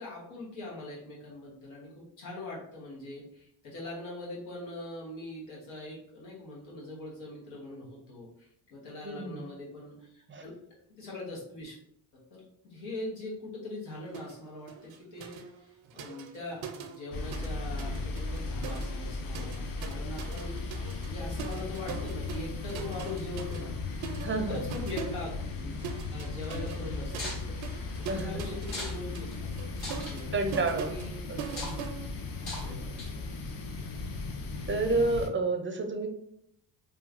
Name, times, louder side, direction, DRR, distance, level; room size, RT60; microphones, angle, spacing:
voice 1, 0.0-10.5 11.0-11.7 12.3-23.7 24.4-25.7 26.1-29.5 30.0-30.3 30.9-31.2 31.5-31.8 32.6-33.5, left 2 dB, 90° left, -5 dB, 1.1 m, -42 dB
voice 2, 9.0-9.4 10.3-10.4 24.2-24.6 28.1-28.4 30.3-30.9 31.3-31.4 34.7-36.1, right 3 dB, 25° right, 5 dB, 0.4 m, -29 dB
sound 1, 14.1-14.4 14.7-17.5 17.8-32.7, right 6 dB, 75° right, 0.5 m, -43 dB
sound 2, 17.1-35.3, left 3 dB, 50° left, 0.6 m, -37 dB
sound 3, 27.1-27.4 28.6-29.0 29.3-29.4 29.8-30.2 31.4-31.8 32.4-32.7 33.0-33.3, left 2 dB, 70° left, 1.4 m, -39 dB
3.0 x 2.3 x 2.4 m, 0.71 s
supercardioid pair, 65°, 47 cm